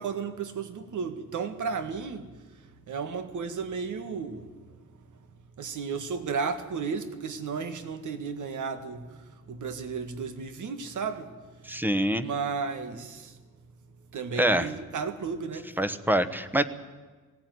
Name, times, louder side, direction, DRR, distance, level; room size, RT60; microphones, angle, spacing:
voice 1, 0.0-2.3 2.9-4.5 5.6-11.3 12.1-13.4 14.1-15.7, right 5 dB, 80° right, 9 dB, 1.8 m, -33 dB
voice 2, 11.7-12.3 14.4-14.7 15.8-16.7, right 1 dB, 5° right, 10 dB, 1.0 m, -25 dB
19.0 x 17.5 x 9.4 m, 1.4 s
wide cardioid pair, 140°, 30 cm